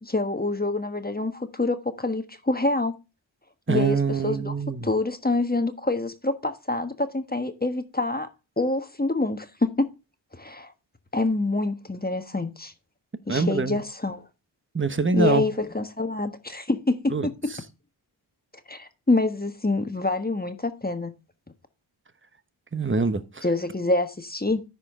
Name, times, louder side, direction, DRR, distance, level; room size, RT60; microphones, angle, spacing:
voice 1, 0.0-3.0 3.7-4.5 4.8-8.3 8.6-9.9 10.3-10.7 11.1-12.7 13.3-14.2 15.1-17.5 18.7-21.1 23.4-24.6, left 2 dB, 20° left, 1.3 m, -26 dB
voice 2, 3.7-4.9 13.3-13.8 14.7-15.4 17.1-17.6 22.7-23.4, right 4 dB, 25° right, 1.1 m, -25 dB
13.5 x 5.1 x 3.6 m
cardioid pair, 45°, 47 cm